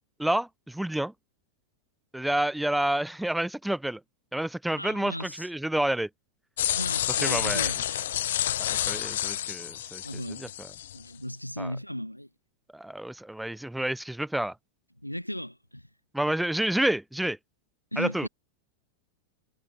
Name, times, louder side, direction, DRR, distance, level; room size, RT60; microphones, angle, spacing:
voice 1, 0.2-1.1 2.1-4.0 4.3-6.1 7.1-7.7 8.6-10.7 11.6-11.7 12.7-14.5 16.1-17.4 18.0-18.3, right 1 dB, 5° right, 4.3 m, -29 dB
voice 2, 4.7-5.5 6.7-7.8 10.0-10.5 10.9-12.3 15.0-15.9 17.9-18.3, equal, 90° left, 5.1 m, -36 dB
sound 1, 6.6-11.0, left 12 dB, 60° left, 1.1 m, -29 dB
figure-of-eight pair, 90°, 0 cm